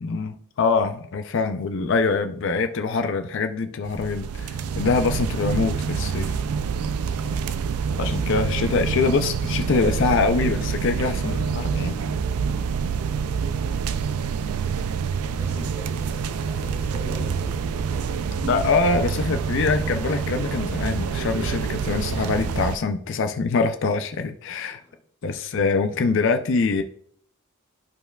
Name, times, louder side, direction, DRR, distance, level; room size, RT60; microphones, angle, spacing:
voice 1, 0.0-6.4 8.0-12.0 18.4-24.8 25.2-26.8, left 4 dB, 55° left, 7 dB, 0.4 m, -24 dB
sound 1, 3.8-22.8, right 6 dB, 85° right, 0.4 m, -27 dB
voice 2, 7.7-9.2 14.7-18.5 24.7-25.0 25.4-25.5, left 1 dB, 15° right, 0 dB, 1.7 m, -44 dB
13.5 x 4.6 x 2.3 m, 0.62 s
head